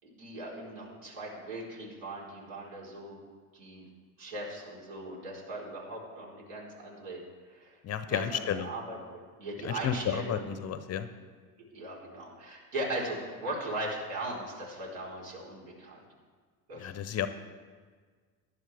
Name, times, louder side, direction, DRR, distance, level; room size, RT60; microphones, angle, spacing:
voice 1, 0.0-3.2 3.5-3.8 4.2-7.2 7.5-7.8 8.1-10.4 11.7-16.0 16.7-16.9, right 1 dB, 70° right, -4 dB, 4.3 m, -39 dB
voice 2, 7.8-8.7 9.6-11.1 16.7-17.3, left 9 dB, 35° left, 11 dB, 0.7 m, -32 dB
16.0 x 11.0 x 3.4 m, 1.6 s
supercardioid pair, 100°, 44 cm